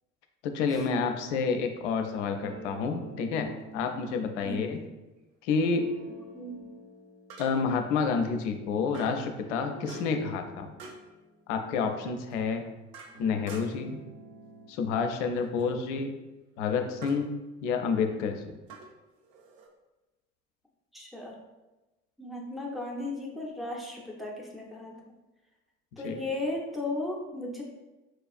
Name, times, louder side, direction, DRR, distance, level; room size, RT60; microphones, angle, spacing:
voice 1, 0.4-4.8 5.4-5.9 7.4-10.7 11.5-12.6 13.2-14.0 14.7-16.1 16.6-17.3 17.6-18.5 26.0-26.2, left 5 dB, 65° left, 6 dB, 0.5 m, -29 dB
sound 1, 2.4-5.1 5.6-9.0 9.4-12.6 13.0-14.7, right 1 dB, 40° right, 0.9 m, -49 dB
sound 2, 3.6-3.7 7.3-7.8 8.9-9.3 9.9-10.3 10.8-11.1 12.3-13.9 15.4-15.7 17.0-17.3 18.7-19.7, right 4 dB, 60° right, 0.6 m, -48 dB
voice 2, 4.4-4.8 6.3-6.6 20.9-21.3 22.2-25.1 26.0-27.6, left 2 dB, ahead, -1 dB, 0.6 m, -36 dB
4.3 x 2.3 x 2.4 m, 1.1 s
figure-of-eight pair, 60°, 38 cm